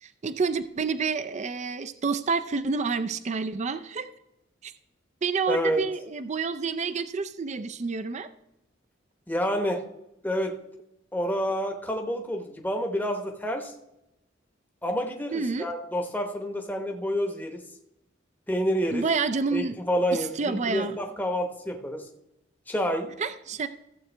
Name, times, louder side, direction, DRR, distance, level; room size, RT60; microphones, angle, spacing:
voice 1, 0.0-4.1 4.6-4.7 5.2-8.3 15.3-15.7 18.9-19.8 20.4-21.0 23.2-23.7, right 4 dB, 35° right, 12 dB, 0.4 m, -28 dB
voice 2, 5.5-5.8 9.3-9.8 10.2-10.5 11.1-13.7 14.8-17.6 18.5-19.1 19.5-22.0 22.7-23.1, equal, 10° left, 3 dB, 0.9 m, -28 dB
14.5 x 7.7 x 3.3 m, 0.87 s
head